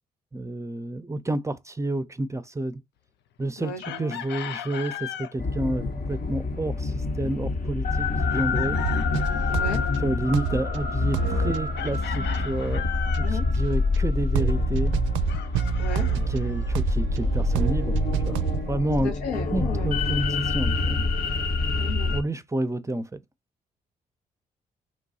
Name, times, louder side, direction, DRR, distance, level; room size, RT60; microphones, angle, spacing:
voice 1, 0.3-2.8 3.4-8.8 10.0-12.8 13.2-15.0 16.3-18.0 18.3-19.1 19.5-21.0 22.1-23.2, right 1 dB, 15° right, 0.5 m, -29 dB
voice 2, 3.6-4.2 9.5-9.8 13.2-13.5 15.8-16.1 19.0-19.9 21.7-22.1, left 3 dB, 85° left, 0.8 m, -34 dB
Chicken rooster, 3.8-5.3 8.3-9.7 11.8-13.4 15.3-16.8, left 10 dB, 60° left, 0.4 m, -37 dB
sound 1, 5.4-22.2, left 3 dB, 45° left, 0.8 m, -26 dB
sound 2, 8.8-10.0 10.3-10.8 11.1-13.6 13.9-14.0 14.3-18.8, right 13 dB, 70° right, 0.4 m, -29 dB
3.1 x 2.2 x 4.1 m
hypercardioid pair, 45°, 20 cm